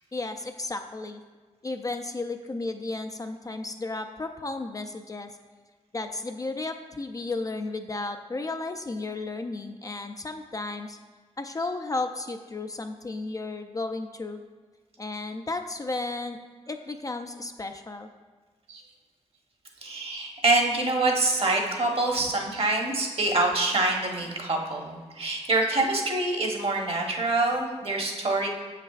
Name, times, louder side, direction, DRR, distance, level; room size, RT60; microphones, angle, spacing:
voice 1, 0.1-1.2 1.6-5.3 5.9-11.0 11.4-14.4 15.0-16.4 16.7-18.1, left 3 dB, 25° left, 6 dB, 0.4 m, -33 dB
voice 2, 19.8-28.5, right 2 dB, 50° right, 1 dB, 1.1 m, -25 dB
7.2 x 5.7 x 2.4 m, 1.4 s
cardioid pair, 65°, 13 cm